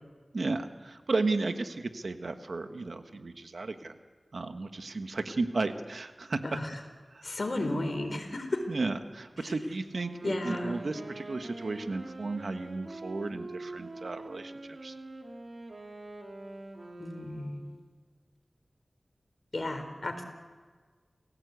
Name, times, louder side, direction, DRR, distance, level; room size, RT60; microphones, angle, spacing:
voice 1, 0.3-4.0 4.3-6.4 7.1-7.3 8.7-14.5 14.8-14.9, right 3 dB, 75° right, 7 dB, 1.5 m, -34 dB
voice 2, 6.4-6.8 7.2-8.6 9.4-9.5 10.2-10.8 17.0-17.6 19.5-20.2, left 1 dB, 55° left, 7 dB, 3.9 m, -33 dB
Wind instrument woodwind instrument, 9.9-17.8, right 2 dB, 55° right, 3.6 m, -44 dB
29.5 x 16.5 x 8.3 m, 1.5 s
wide cardioid pair, 50°, 0 cm